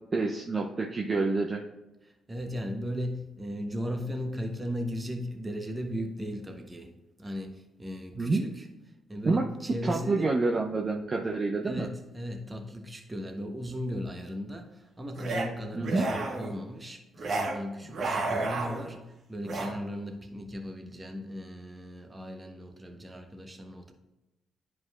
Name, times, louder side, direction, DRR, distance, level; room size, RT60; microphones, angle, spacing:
voice 1, 0.1-1.6 8.2-8.4 9.2-11.9 15.7-16.1, right 3 dB, 40° right, 0 dB, 0.7 m, -28 dB
voice 2, 2.3-6.9 7.2-8.7 9.1-10.4 11.6-19.0 19.3-23.9, equal, 20° right, 5 dB, 1.1 m, -37 dB
sound 1, 15.1-15.5 15.8-16.5 17.2-17.5 17.9-19.0 19.4-19.7, right 2 dB, 55° right, 1.4 m, -31 dB
10.5 x 4.7 x 2.4 m, 1.0 s
hypercardioid pair, 45°, 0 cm